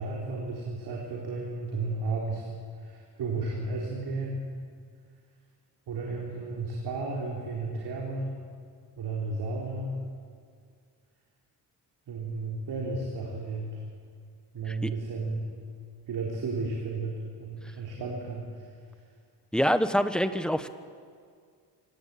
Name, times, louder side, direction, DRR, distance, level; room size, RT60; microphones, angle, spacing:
voice 1, 0.0-2.5 2.8-4.4 5.9-8.4 9.0-9.9 12.1-13.8 14.5-15.5 16.0-18.7, right 3 dB, 65° right, -2 dB, 4.0 m, -33 dB
voice 2, 19.5-20.7, equal, ahead, 10 dB, 1.0 m, -25 dB
24.5 x 18.0 x 8.6 m, 2.1 s
cardioid pair, 125°, 42 cm